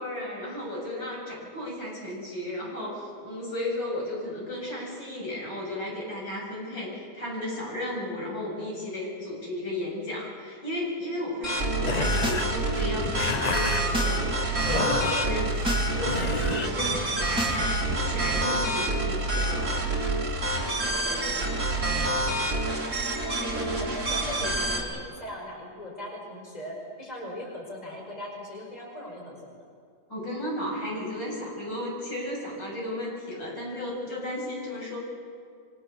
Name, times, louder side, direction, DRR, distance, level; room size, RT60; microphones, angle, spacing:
voice 1, 0.0-15.5 15.9-19.9 20.8-21.3 30.1-35.0, left 1 dB, 80° left, -3 dB, 8.1 m, -34 dB
sound 1, 11.4-24.8, right 2 dB, 40° right, 4.0 m, -27 dB
sound 2, 11.8-17.7, left 4 dB, 45° left, 0.5 m, -33 dB
sound 3, 12.1-12.5 12.7-14.2 14.5-14.8 15.3-15.9 16.2-18.2, equal, 5° right, 2.2 m, -35 dB
voice 2, 23.2-29.6, left 1 dB, 20° left, -1 dB, 5.4 m, -39 dB
26.5 x 24.5 x 6.9 m, 2.1 s
omnidirectional pair, 2.0 m